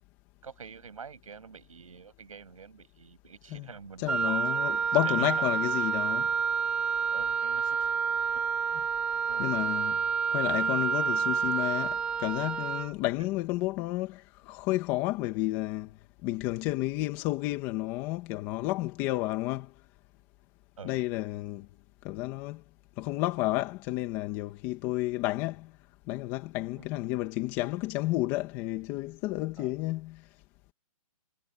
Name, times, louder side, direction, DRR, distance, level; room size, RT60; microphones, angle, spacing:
voice 1, 0.4-4.4 5.0-5.3 7.1-7.8 8.3-8.4 9.3-9.4 20.8-20.9 26.8-26.9 29.6-29.7, right 6 dB, 65° right, 7.4 m, -46 dB
voice 2, 4.0-6.3 9.4-10.0 10.3-19.7 20.8-21.7 22.0-22.6 23.0-25.7 26.1-30.3, left 18 dB, 15° left, 1.9 m, -31 dB
Wind instrument woodwind instrument, 4.1-12.9, right 6 dB, 5° right, 1.1 m, -29 dB
hypercardioid pair, 175°, 18 cm